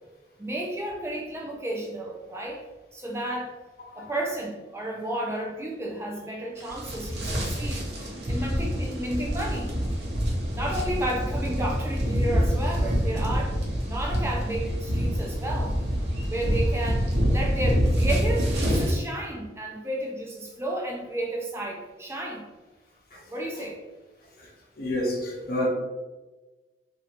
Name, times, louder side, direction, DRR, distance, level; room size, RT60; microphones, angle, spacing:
voice 1, 0.4-2.6 2.9-3.5 3.9-7.9 8.3-9.7 10.5-13.6 13.9-15.7 16.3-22.4 23.3-23.8, right 1 dB, 15° right, 0.4 m, -32 dB
sound 1, 6.6-19.0, equal, 65° right, 0.8 m, -26 dB
voice 2, 24.8-25.7, left 1 dB, 55° left, 0.8 m, -28 dB
3.0 x 2.6 x 2.9 m
head